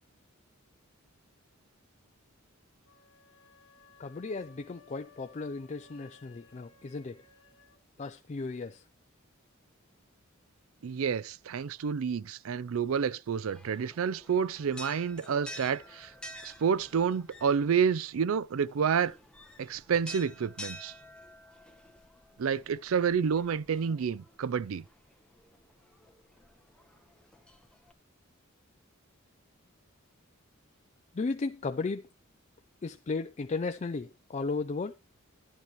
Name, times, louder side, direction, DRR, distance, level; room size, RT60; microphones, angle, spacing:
sound 1, 2.8-7.8, left 4 dB, 70° left, 1.2 m, -60 dB
voice 1, 4.0-7.2 8.0-8.8 31.1-32.0 32.8-34.9, left 3 dB, 35° left, 0.4 m, -35 dB
voice 2, 10.8-16.1 16.4-19.1 19.6-20.9 22.4-24.8, right 7 dB, 70° right, 0.4 m, -29 dB
sound 2, 13.5-27.9, equal, 5° left, 1.1 m, -50 dB
10.5 x 10.0 x 3.1 m
head